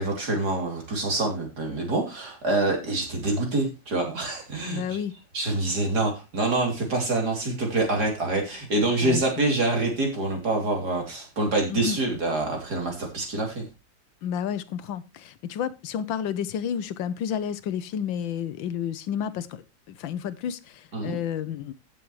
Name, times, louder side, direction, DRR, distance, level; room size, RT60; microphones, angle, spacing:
voice 1, 0.0-5.0 5.3-13.7 20.9-21.2, right 2 dB, 55° right, 3.8 m, -26 dB
voice 2, 4.7-5.1 9.0-9.3 11.7-12.0 14.2-21.7, left 8 dB, 80° left, 1.5 m, -31 dB
15.5 x 7.5 x 3.2 m
omnidirectional pair, 2.1 m